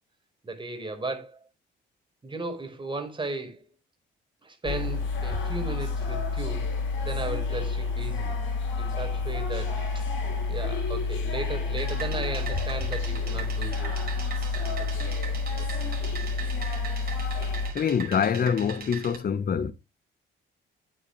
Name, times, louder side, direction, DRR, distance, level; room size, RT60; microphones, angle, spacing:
voice 1, 0.4-1.4 2.2-3.6 4.4-6.7 7.0-8.3 8.8-10.0 10.5-14.2 14.8-15.7, right 2 dB, 25° right, 4.8 m, -36 dB
sound 1, 4.6-17.7, left 4 dB, 75° left, 4.8 m, -29 dB
sound 2, 11.8-19.1, right 6 dB, 50° right, 5.3 m, -40 dB
voice 2, 17.7-19.7, left 7 dB, 50° left, 1.3 m, -25 dB
9.9 x 8.7 x 3.3 m
cardioid pair, 90°, 20 cm